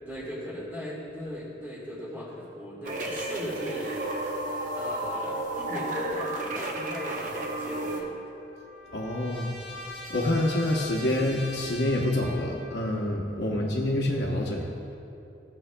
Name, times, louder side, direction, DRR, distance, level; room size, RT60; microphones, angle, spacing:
voice 1, 0.0-4.0 4.8-8.2 13.3-13.8, equal, 10° right, -6 dB, 1.9 m, -38 dB
sound 1, 2.8-8.0, right 1 dB, 45° right, 0.8 m, -32 dB
Trumpet, 8.0-12.9, left 2 dB, 30° left, 1.1 m, -42 dB
voice 2, 8.9-9.5 10.1-14.7, left 1 dB, 70° left, -2 dB, 0.8 m, -27 dB
15.5 x 7.3 x 2.2 m, 2.8 s
head